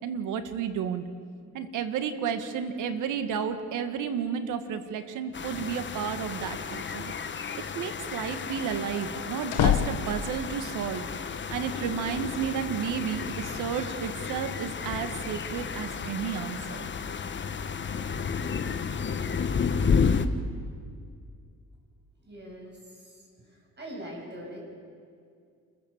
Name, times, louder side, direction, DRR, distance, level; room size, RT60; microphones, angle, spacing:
voice 1, 0.0-1.0 1.5-7.1 7.7-11.1 11.5-16.9, right 7 dB, 85° right, 9 dB, 1.7 m, -32 dB
sound 1, 5.3-20.3, left 6 dB, 40° left, 1.2 m, -32 dB
sound 2, 9.5-10.6, left 9 dB, 90° left, 1.3 m, -27 dB
voice 2, 22.2-23.2 23.8-24.6, equal, 35° right, -1 dB, 7.9 m, -42 dB
28.5 x 14.5 x 7.4 m, 2.2 s
cardioid pair, 90°, 30 cm